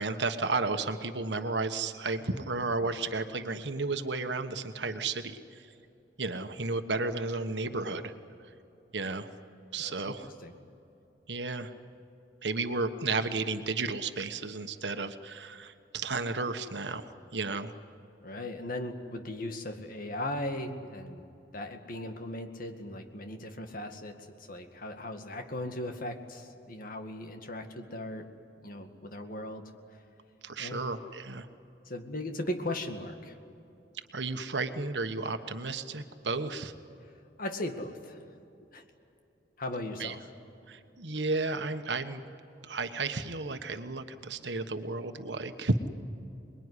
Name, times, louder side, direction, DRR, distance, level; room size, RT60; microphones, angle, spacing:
voice 1, 0.0-5.7 6.2-8.1 8.9-9.3 9.7-10.3 11.3-11.7 12.4-17.7 30.4-31.5 34.1-36.7 40.0-40.1 40.7-42.2 42.6-45.7, right 3 dB, 80° right, 8 dB, 1.3 m, -33 dB
voice 2, 18.2-21.3 21.5-28.3 28.6-29.7 30.6-30.8 31.9-33.4 37.4-38.2 38.7-38.8 39.6-40.3 41.1-41.2, left 1 dB, 55° left, 6 dB, 2.1 m, -38 dB
27.0 x 21.0 x 9.9 m, 2.8 s
head